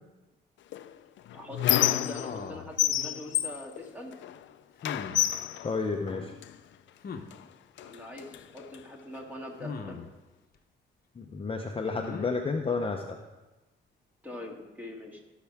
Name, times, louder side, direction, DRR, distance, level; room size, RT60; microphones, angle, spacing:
Squeak, 0.7-2.5 2.8-4.4 4.8-6.5 7.3-7.4 7.8-8.8, left 12 dB, 70° left, 0.5 m, -29 dB
voice 1, 1.3-4.2 7.8-10.0 14.2-15.2, left 1 dB, 10° right, 0 dB, 2.2 m, -42 dB
sound 1, 2.1-2.7 4.8-5.2 7.0-7.3 9.6-10.1 11.9-12.3, left 5 dB, 50° left, 1.0 m, -39 dB
voice 2, 5.6-6.3 11.1-13.2, left 4 dB, 25° left, 3 dB, 0.8 m, -31 dB
16.5 x 5.8 x 3.6 m, 1.1 s
cardioid pair, 90°, 20 cm